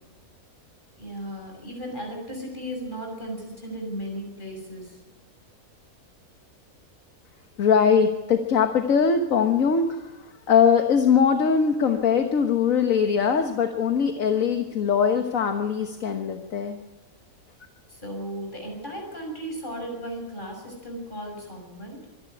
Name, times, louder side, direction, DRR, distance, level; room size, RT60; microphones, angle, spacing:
voice 1, 1.0-5.0 17.9-22.1, equal, 30° left, 1 dB, 6.7 m, -35 dB
voice 2, 7.6-16.8, left 6 dB, 65° left, 5 dB, 1.7 m, -21 dB
25.0 x 11.5 x 9.8 m, 1.1 s
omnidirectional pair, 1.6 m